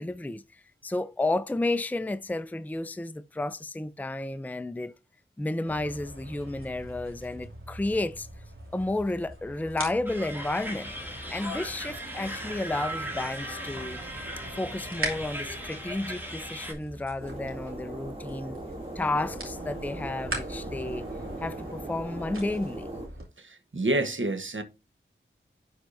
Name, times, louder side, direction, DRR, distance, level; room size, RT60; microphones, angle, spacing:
voice 1, 0.0-4.9 5.4-8.3 8.7-10.9 11.3-14.0 14.5-18.6 19.0-21.1 21.4-22.9, left 2 dB, 10° left, 0.5 m, -32 dB
sound 1, 5.6-23.3, right 1 dB, 90° right, 2.6 m, -42 dB
sound 2, 10.1-16.7, equal, 10° right, 2.3 m, -37 dB
sound 3, 17.2-23.1, right 1 dB, 25° right, 2.7 m, -39 dB
voice 2, 23.4-24.6, right 1 dB, 70° right, 1.2 m, -28 dB
11.5 x 4.6 x 2.6 m
wide cardioid pair, 50°, 21 cm